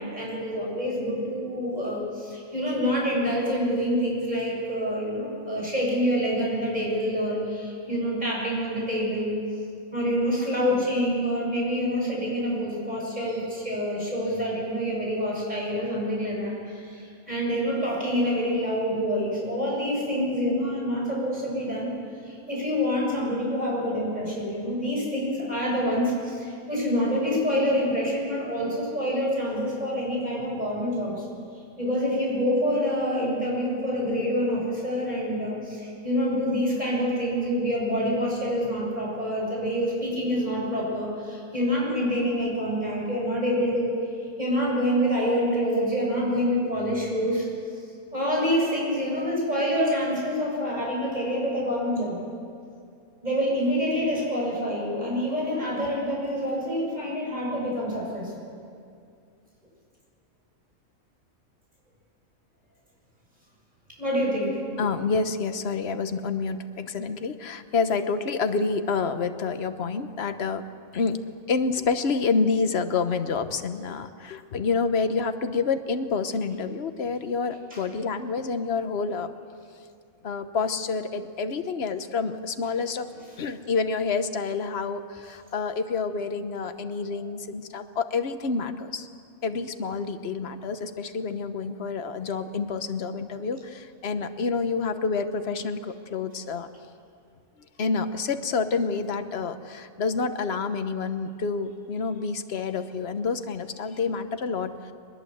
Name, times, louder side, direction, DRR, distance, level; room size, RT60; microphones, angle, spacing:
voice 1, 0.0-9.4 9.9-21.9 22.2-31.2 31.8-43.9 44.4-47.5 48.1-52.2 53.2-58.5 64.0-64.6 77.7-77.8 87.1-87.2, equal, 30° right, -3 dB, 7.1 m, -27 dB
voice 2, 64.8-70.6 70.9-79.3 80.2-83.1 83.4-89.1 89.4-96.7 97.8-104.9, left 4 dB, 50° left, 9 dB, 1.3 m, -28 dB
22.0 x 21.0 x 8.0 m, 2.3 s
omnidirectional pair, 1.5 m